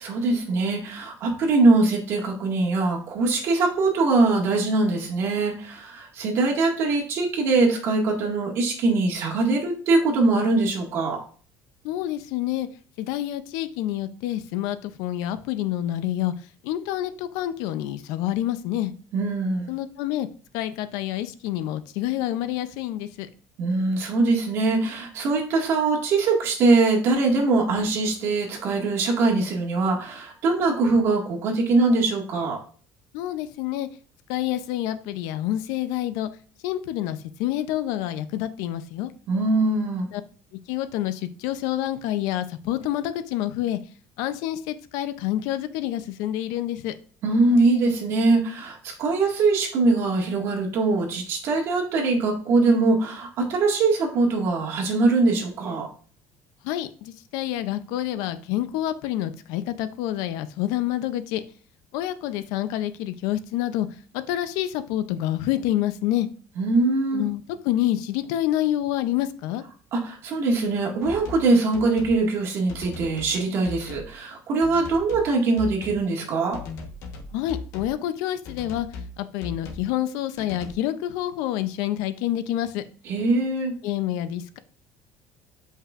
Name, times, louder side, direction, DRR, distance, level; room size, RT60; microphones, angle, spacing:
voice 1, 0.0-11.2 19.1-19.7 23.6-32.6 39.3-40.1 47.2-55.9 66.6-67.2 69.9-76.6 83.1-83.7, right 3 dB, 45° right, -1 dB, 1.9 m, -22 dB
voice 2, 11.8-12.7 13.0-16.3 16.6-18.9 19.7-20.3 20.5-23.3 33.1-33.9 34.3-36.3 36.6-39.1 40.1-40.2 40.5-43.8 44.2-46.9 56.6-61.4 61.9-63.9 64.1-66.3 67.1-69.6 77.3-78.9 79.2-82.8 83.8-84.6, left 13 dB, 80° left, 12 dB, 0.6 m, -28 dB
sound 1, 71.0-71.5 71.7-72.2 72.7-73.4 73.6-74.1 74.6-75.3 75.6-76.0 76.5-77.9 78.4-79.1 79.4-79.9 80.4-80.7, left 3 dB, 55° left, 1.2 m, -38 dB
7.7 x 5.4 x 2.5 m, 0.41 s
cardioid pair, 170°, 6 cm